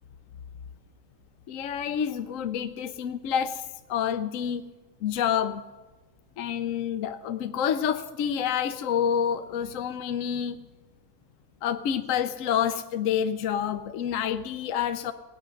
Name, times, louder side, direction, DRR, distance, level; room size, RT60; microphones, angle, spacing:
voice 1, 1.5-4.7 5.0-5.6 6.4-10.7 11.6-15.1, left 8 dB, 70° left, 9 dB, 1.0 m, -28 dB
17.0 x 9.6 x 6.3 m, 1.2 s
omnidirectional pair, 1.5 m